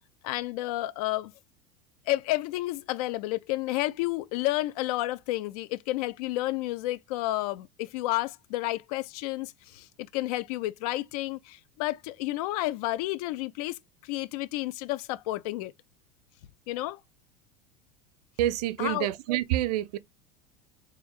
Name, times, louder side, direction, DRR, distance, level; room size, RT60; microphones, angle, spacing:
voice 1, 0.2-1.3 2.1-15.7 16.7-17.0 18.8-19.1, left 17 dB, 65° left, 0.4 m, -31 dB
voice 2, 18.4-20.0, right 14 dB, 70° right, 0.4 m, -27 dB
4.4 x 2.4 x 2.4 m
hypercardioid pair, 85°, 21 cm